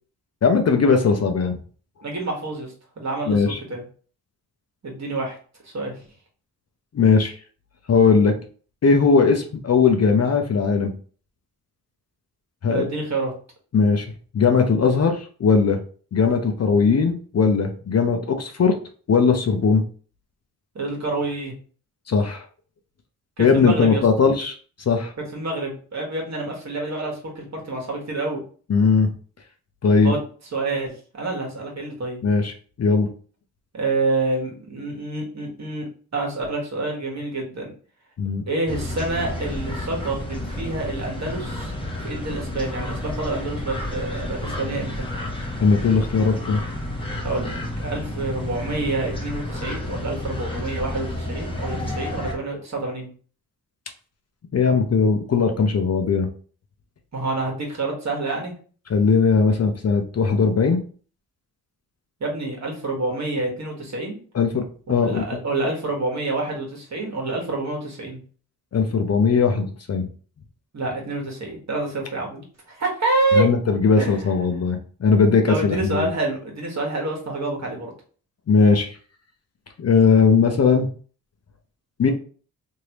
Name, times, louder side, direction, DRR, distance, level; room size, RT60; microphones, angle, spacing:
voice 1, 0.4-1.6 3.3-3.6 6.9-7.3 7.9-8.4 8.8-10.9 12.6-12.8 13.7-14.1 14.3-15.8 16.1-18.8 19.1-19.8 22.1-22.4 23.4-24.5 24.9-25.1 28.7-29.1 29.8-30.1 32.2-32.5 32.8-33.1 38.2-38.4 45.6-46.6 54.5-56.3 58.9-60.8 64.3-65.2 68.7-70.1 73.3-76.1 78.5-79.0 79.8-80.9 82.0-82.1, left 5 dB, 40° left, 5 dB, 0.6 m, -19 dB
voice 2, 2.0-3.8 4.8-5.4 5.6-5.9 12.7-13.3 20.7-21.5 23.4-24.0 25.3-28.4 30.0-30.2 30.5-32.2 33.7-35.9 36.1-37.7 38.5-41.7 42.0-45.0 47.2-53.1 57.1-58.5 62.2-64.2 65.0-68.2 70.7-73.5 73.9-74.3 75.5-77.9, right 2 dB, 45° right, 0 dB, 1.4 m, -27 dB
sound 1, 38.7-52.3, left 1 dB, 15° left, 1.0 m, -30 dB
3.1 x 2.7 x 2.9 m, 0.42 s
cardioid pair, 60°, 39 cm